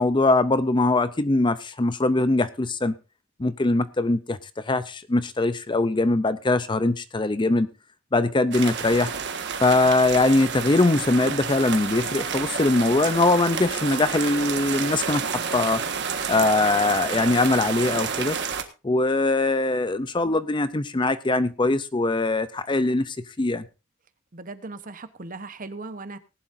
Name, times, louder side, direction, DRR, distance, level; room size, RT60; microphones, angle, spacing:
voice 1, 0.0-2.9 3.4-7.7 8.1-9.1 9.6-15.8 16.3-18.4 18.8-23.6, left 2 dB, 20° left, 14 dB, 0.5 m, -22 dB
sound 1, 8.5-18.6, right 6 dB, 55° right, 1.5 m, -30 dB
voice 2, 24.3-26.2, right 3 dB, 40° right, 11 dB, 1.0 m, -38 dB
18.5 x 11.5 x 2.7 m, 0.30 s
head